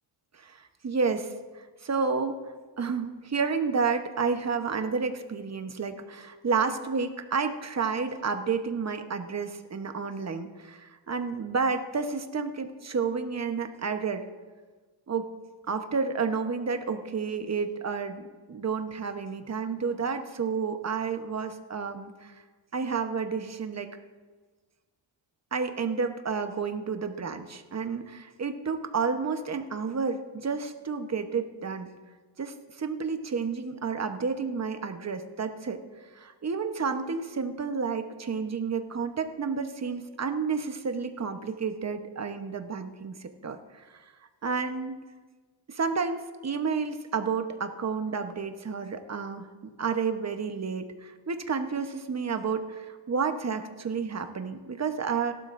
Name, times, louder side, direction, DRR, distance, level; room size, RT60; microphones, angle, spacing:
voice 1, 0.3-2.4 2.8-14.3 15.1-15.3 15.7-22.3 22.7-23.9 25.5-31.9 32.4-35.8 36.1-44.1 44.4-45.0 45.7-49.5 49.8-55.3, right 5 dB, 35° right, 7 dB, 1.0 m, -31 dB
17.5 x 12.0 x 2.6 m, 1.4 s
cardioid pair, 80°, 46 cm